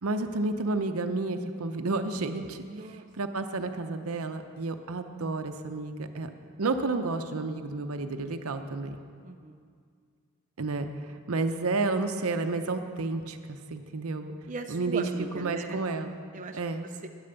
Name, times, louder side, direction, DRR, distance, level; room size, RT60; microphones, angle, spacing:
voice 1, 0.0-2.6 3.1-6.3 6.6-9.0 10.6-14.3 14.7-15.0 15.3-16.2 16.5-16.9, right 3 dB, 75° right, 8 dB, 0.7 m, -31 dB
voice 2, 2.7-3.1 6.4-6.6 9.2-9.6 14.5-15.8 16.3-16.6 17.0-17.1, right 3 dB, 35° right, 4 dB, 0.5 m, -39 dB
10.5 x 8.7 x 6.9 m, 2.1 s
head